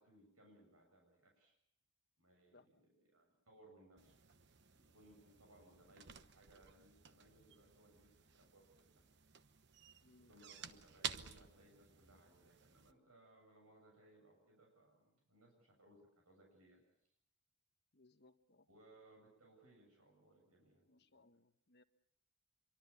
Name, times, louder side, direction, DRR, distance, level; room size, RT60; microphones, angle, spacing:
voice 1, 0.0-1.6 2.2-4.2 4.7-9.0 10.3-16.8 18.7-21.2, right 1 dB, 80° right, 1 dB, 7.8 m, -66 dB
voice 2, 2.5-2.9 10.0-10.3 17.9-18.7 20.8-21.8, left 2 dB, 50° left, 8 dB, 1.3 m, -68 dB
sound 1, 4.0-12.9, right 8 dB, 50° right, 1.0 m, -53 dB
25.5 x 23.5 x 7.2 m, 0.73 s
head